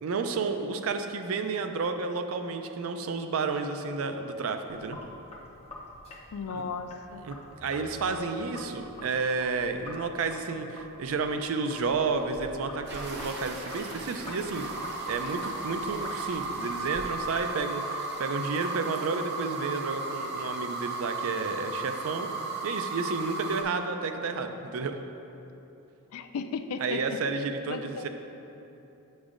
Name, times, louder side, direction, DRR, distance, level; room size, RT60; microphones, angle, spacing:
voice 1, 0.0-5.0 6.5-6.6 7.2-14.7 15.0-22.3 22.6-25.0 26.8-28.1, right 4 dB, 65° right, 7 dB, 0.4 m, -31 dB
Sink (filling or washing), 4.7-17.6, left 1 dB, 30° left, 0.7 m, -46 dB
voice 2, 6.3-7.2 26.1-27.0 27.7-28.1, left 5 dB, 75° left, 9 dB, 0.3 m, -35 dB
sound 1, 12.9-23.6, right 3 dB, 50° right, 0.8 m, -35 dB
8.2 x 6.0 x 2.5 m, 2.9 s
head